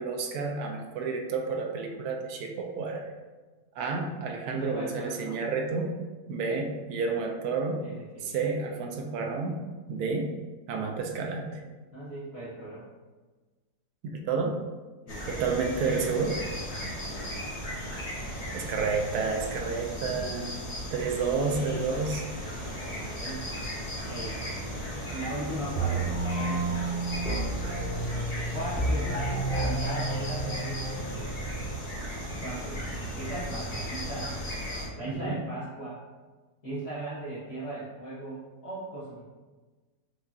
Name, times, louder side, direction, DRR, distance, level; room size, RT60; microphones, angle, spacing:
voice 1, 0.0-3.1 3.8-5.9 6.3-7.8 8.2-9.6 9.9-10.3 10.7-11.6 14.1-14.5 15.3-16.3 18.5-20.5 20.9-22.2 35.1-35.4, right 4 dB, 70° right, 2 dB, 1.0 m, -30 dB
voice 2, 4.4-5.4 7.8-8.4 11.9-12.8 15.0-15.5 16.7-17.4 19.7-20.2 22.5-23.4 24.1-24.4 25.1-27.0 28.5-31.4 32.4-32.8 33.2-34.4 34.9-36.0 36.6-39.2, right 1 dB, 45° left, -11 dB, 1.0 m, -38 dB
sound 1, 15.1-34.9, equal, 65° left, 0.3 m, -36 dB
sound 2, 25.7-31.8, right 2 dB, 5° right, 1.2 m, -31 dB
4.7 x 2.7 x 2.3 m, 1.3 s
omnidirectional pair, 1.8 m